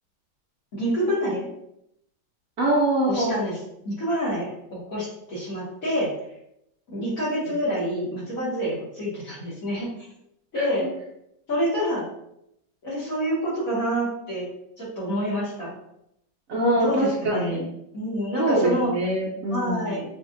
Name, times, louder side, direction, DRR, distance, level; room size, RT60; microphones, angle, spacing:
voice 1, 0.7-1.5 3.1-3.6 3.8-6.1 6.9-9.9 10.5-10.9 11.5-12.1 12.8-14.5 14.8-15.7 16.8-17.6 17.9-18.9 19.5-20.0, equal, 50° left, -8 dB, 2.1 m, -27 dB
voice 2, 2.6-3.4 10.6-10.7 16.5-17.7 18.4-20.0, right 1 dB, 60° right, -4 dB, 1.0 m, -23 dB
6.1 x 2.5 x 2.5 m, 0.78 s
omnidirectional pair, 1.9 m